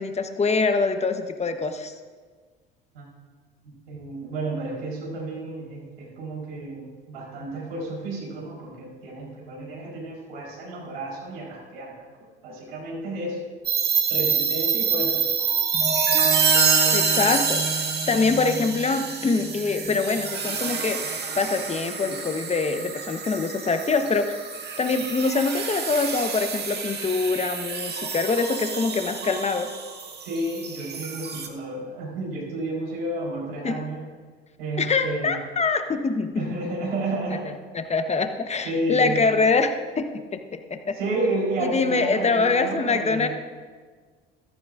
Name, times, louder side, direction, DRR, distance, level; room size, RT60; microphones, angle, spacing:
voice 1, 0.0-1.9 16.9-21.0 21.3-24.4 24.8-29.7 33.6-33.9 34.8-36.5 37.7-40.4 40.7-41.0 41.6-43.3, left 4 dB, 20° left, 8 dB, 1.1 m, -24 dB
voice 2, 3.6-12.0 12.4-13.4 14.1-15.2 30.2-34.1 34.6-35.3 36.3-37.5 38.6-39.2 40.9-43.3, right 2 dB, 80° right, -4 dB, 4.2 m, -31 dB
sound 1, 13.7-31.5, right 5 dB, 35° right, 1.7 m, -26 dB
14.5 x 14.0 x 2.6 m, 1.5 s
hypercardioid pair, 60°, 29 cm